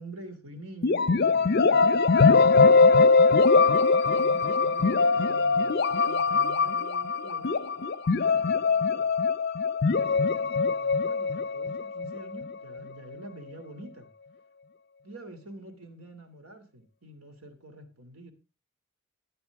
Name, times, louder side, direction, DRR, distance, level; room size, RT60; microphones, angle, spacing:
voice 1, 0.0-3.3 4.1-5.8 6.1-7.6 8.2-9.1 10.3-14.1 15.0-18.3, right 1 dB, 75° right, 8 dB, 2.8 m, -47 dB
sound 1, 0.8-12.5, left 4 dB, 45° left, 0.5 m, -22 dB
14.5 x 10.0 x 3.6 m, 0.30 s
head